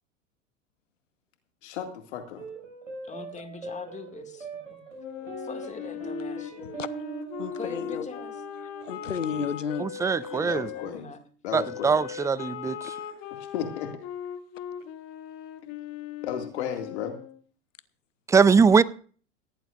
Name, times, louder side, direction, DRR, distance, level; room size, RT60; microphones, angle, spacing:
voice 1, 1.6-2.5 9.3-9.5 10.3-11.1 11.4-12.1 13.4-13.9 16.2-17.2, left 8 dB, 60° left, 2.3 m, -34 dB
sound 1, 2.4-11.0, right 3 dB, 90° right, 6.6 m, -41 dB
voice 2, 3.1-4.8 5.4-6.7 7.5-8.4 10.6-11.2, left 5 dB, 20° left, 2.2 m, -42 dB
Wind instrument woodwind instrument, 5.0-10.9 11.5-17.4, left 9 dB, 45° left, 2.0 m, -39 dB
voice 3, 7.4-8.1 8.6-10.4 12.8-13.2, left 7 dB, 90° left, 1.0 m, -34 dB
voice 4, 9.8-10.7 11.5-12.8 18.3-18.8, right 5 dB, 10° right, 0.5 m, -21 dB
18.0 x 16.0 x 2.5 m
figure-of-eight pair, 90°, 37 cm